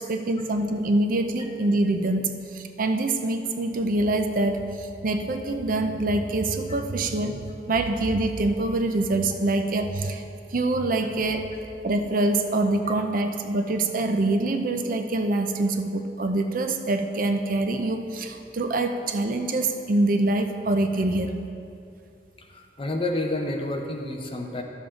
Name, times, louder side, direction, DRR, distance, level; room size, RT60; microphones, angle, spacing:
voice 1, 0.1-10.2 10.5-11.5 11.8-21.3, right 2 dB, 50° right, 6 dB, 0.6 m, -25 dB
voice 2, 22.4-24.6, left 2 dB, 30° left, 2 dB, 0.8 m, -29 dB
12.0 x 7.0 x 3.8 m, 2.5 s
head